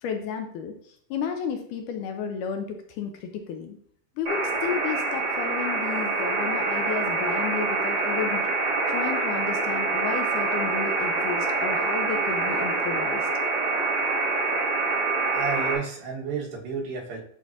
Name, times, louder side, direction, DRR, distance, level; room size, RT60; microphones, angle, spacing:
voice 1, 0.0-3.8 4.2-8.5 8.9-13.3, left 6 dB, 80° left, 5 dB, 2.0 m, -32 dB
sound 1, 4.3-15.8, right 3 dB, 35° right, 1.2 m, -26 dB
voice 2, 15.3-17.2, right 5 dB, 90° right, -2 dB, 3.2 m, -31 dB
11.0 x 4.1 x 2.5 m, 0.63 s
omnidirectional pair, 4.0 m